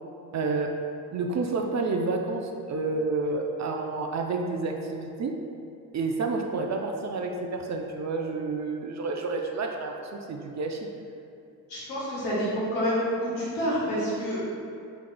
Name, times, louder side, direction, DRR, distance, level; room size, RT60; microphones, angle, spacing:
voice 1, 0.3-0.7 1.1-5.3 5.9-10.9, right 3 dB, 35° right, 2 dB, 0.5 m, -29 dB
voice 2, 11.7-14.5, equal, 80° left, -7 dB, 1.4 m, -28 dB
5.8 x 3.7 x 2.2 m, 2.6 s
hypercardioid pair, 40°, 48 cm